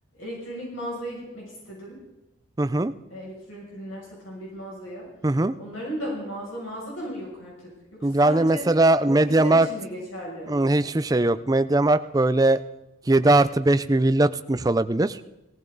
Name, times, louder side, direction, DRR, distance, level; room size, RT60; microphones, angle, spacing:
voice 1, 0.1-2.0 3.1-5.1 5.6-8.6 9.1-10.5, equal, 80° left, -4 dB, 6.9 m, -36 dB
voice 2, 2.6-2.9 5.2-5.5 8.0-9.7 10.5-12.6 13.1-15.2, right 2 dB, 20° right, 12 dB, 0.4 m, -20 dB
18.5 x 15.5 x 4.0 m, 0.95 s
head